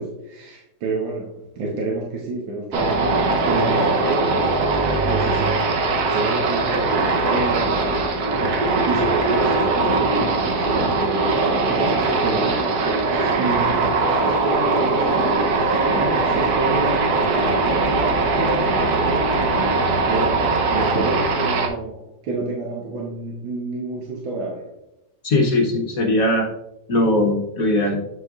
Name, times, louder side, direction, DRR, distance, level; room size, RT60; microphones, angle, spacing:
voice 1, 0.0-5.7 6.1-8.3 8.8-12.5 12.8-24.7, right 2 dB, 85° right, -1 dB, 1.7 m, -29 dB
sound 1, 2.7-21.7, right 3 dB, 60° right, 1.2 m, -20 dB
voice 2, 25.2-26.5 26.9-28.0, left 1 dB, 60° left, 1 dB, 1.0 m, -19 dB
7.7 x 6.2 x 2.4 m, 0.88 s
omnidirectional pair, 2.1 m